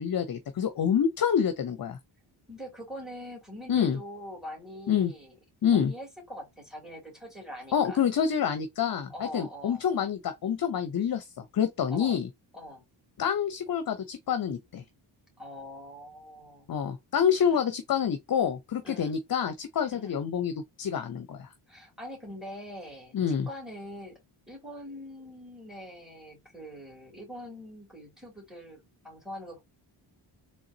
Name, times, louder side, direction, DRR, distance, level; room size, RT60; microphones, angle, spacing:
voice 1, 0.0-2.0 3.7-4.0 4.9-5.1 5.6-5.9 7.7-11.3 11.5-12.3 13.2-14.8 16.7-21.5 23.1-23.5, left 8 dB, 45° left, 0.7 m, -27 dB
voice 2, 2.5-5.3 5.7-8.0 9.1-9.9 11.9-12.2 12.5-12.8 15.4-16.7 18.8-19.2 19.9-20.2 21.7-23.2 23.5-24.2 24.5-29.6, equal, ahead, 2.8 m, -43 dB
3.7 x 3.3 x 2.7 m
cardioid pair, 65°, 50 cm